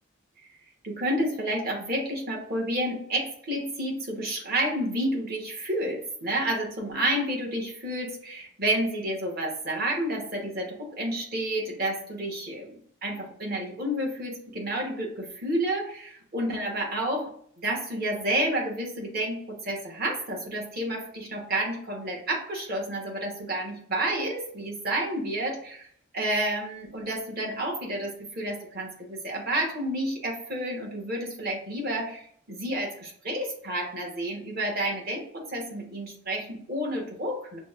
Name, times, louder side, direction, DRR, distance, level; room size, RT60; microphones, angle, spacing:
voice 1, 0.8-17.3 17.6-25.9 26.1-37.6, right 1 dB, 45° right, -1 dB, 1.0 m, -30 dB
5.9 x 2.0 x 2.4 m, 0.63 s
head